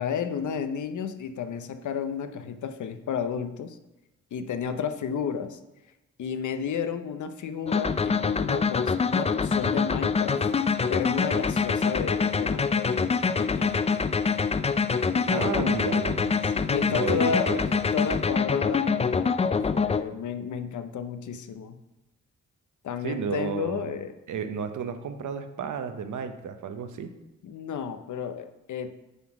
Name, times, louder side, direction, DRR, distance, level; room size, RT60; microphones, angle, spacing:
voice 1, 0.0-3.8 4.3-5.6 6.2-10.4 10.9-13.8 15.1-15.8 16.5-17.6 17.9-21.8 22.8-24.1 27.4-28.9, left 7 dB, 80° left, 9 dB, 0.7 m, -32 dB
sound 1, 7.7-20.0, left 5 dB, 20° left, 0.4 m, -25 dB
voice 2, 15.3-16.3 16.9-17.6 23.0-23.9 24.3-27.2, right 6 dB, 80° right, 8 dB, 0.8 m, -32 dB
8.1 x 4.0 x 5.9 m, 0.99 s
cardioid pair, 75°, 29 cm